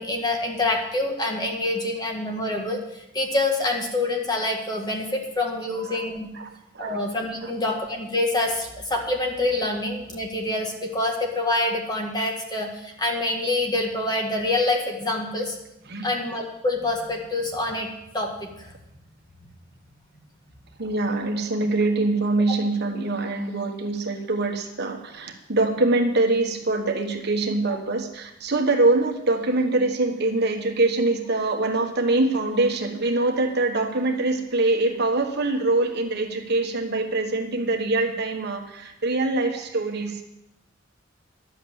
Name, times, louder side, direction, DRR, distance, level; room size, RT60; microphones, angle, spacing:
voice 1, 0.0-6.3 6.8-15.6 16.0-17.9 18.1-18.7, left 2 dB, 20° left, 1 dB, 1.9 m, -26 dB
voice 2, 5.7-6.0 6.4-7.0 7.4-7.5 15.9-16.1 20.8-40.2, right 2 dB, 55° right, 3 dB, 1.4 m, -24 dB
11.5 x 7.9 x 7.1 m, 0.86 s
head